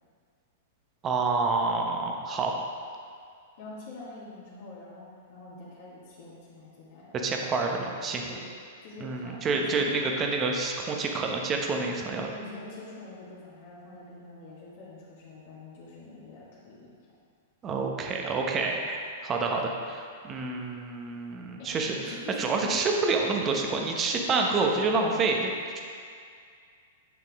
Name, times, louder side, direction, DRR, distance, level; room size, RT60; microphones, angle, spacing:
voice 1, 1.0-2.6 7.1-8.2 9.0-12.3 17.6-25.8, right 3 dB, 25° right, 1 dB, 1.1 m, -28 dB
voice 2, 3.6-7.2 8.3-8.4 8.8-9.9 12.0-17.0 21.6-22.8, left 2 dB, 60° left, -7 dB, 2.0 m, -45 dB
9.4 x 5.8 x 3.6 m, 2.2 s
figure-of-eight pair, 105°, 0 cm